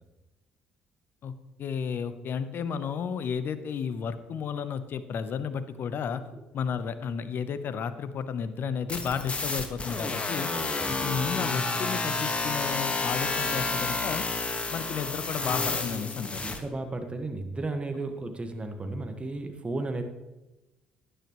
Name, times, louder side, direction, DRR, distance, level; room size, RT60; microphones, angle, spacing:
voice 1, 1.6-6.2 6.5-10.5 10.9-14.3 14.7-16.4, left 7 dB, 55° left, 12 dB, 0.9 m, -32 dB
sound 1, 8.9-16.6, left 3 dB, 25° left, 1.6 m, -30 dB
voice 2, 10.7-11.0 15.9-16.0 16.4-20.0, right 2 dB, 25° right, 6 dB, 1.6 m, -34 dB
12.5 x 10.5 x 3.1 m, 1.0 s
hypercardioid pair, 50°, 4 cm